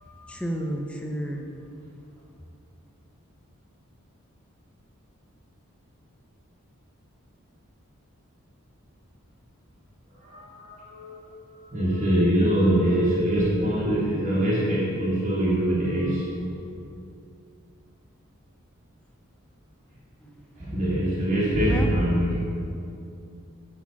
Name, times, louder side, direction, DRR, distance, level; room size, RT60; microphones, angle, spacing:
voice 1, 0.3-1.5 20.2-20.4 21.6-21.9, right 1 dB, 5° left, 1 dB, 0.6 m, -31 dB
voice 2, 10.2-16.3 20.6-22.4, right 1 dB, 35° right, -7 dB, 1.6 m, -24 dB
8.9 x 4.2 x 5.8 m, 2.6 s
head